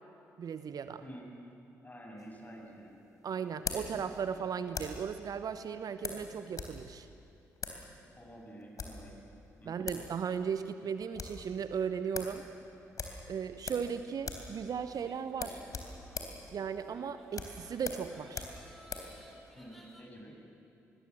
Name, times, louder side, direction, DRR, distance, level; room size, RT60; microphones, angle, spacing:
voice 1, 0.4-1.0 3.2-7.1 9.7-12.4 13.3-15.6 16.5-18.4, right 7 dB, 50° right, 11 dB, 0.9 m, -36 dB
voice 2, 1.8-2.9 8.1-9.1 9.6-9.9 19.5-20.3, equal, 20° left, 0 dB, 7.9 m, -49 dB
sound 1, 2.2-5.1 6.0-6.8 7.0-7.1 7.6-7.8 8.6-9.1 9.6-9.7 9.9-10.1 10.4-10.5 10.8-11.4 11.8-11.9 12.1-12.4 12.9-13.9 14.2-14.5 14.8-14.9 15.3-19.1, left 4 dB, 45° left, 3.7 m, -41 dB
sound 2, 14.8-20.0, equal, ahead, 5.7 m, -57 dB
27.0 x 21.5 x 7.7 m, 2.7 s
figure-of-eight pair, 40°, 8 cm